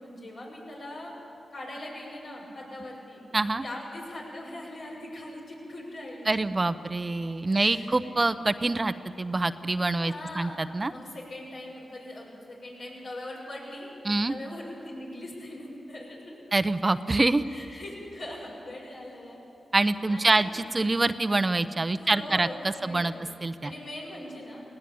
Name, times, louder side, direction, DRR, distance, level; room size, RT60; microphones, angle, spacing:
voice 1, 0.0-1.1 1.5-3.2 3.6-6.4 7.5-8.1 10.0-10.6 10.9-16.4 17.5-19.4 19.8-20.5 21.9-23.2 23.6-24.6, left 1 dB, 75° left, -4 dB, 7.2 m, -41 dB
voice 2, 3.3-3.6 6.3-10.9 14.0-14.3 16.5-17.4 19.7-23.1 23.4-23.7, right 2 dB, 35° right, 12 dB, 0.7 m, -25 dB
19.5 x 17.5 x 8.6 m, 2.8 s
supercardioid pair, 45°, 0 cm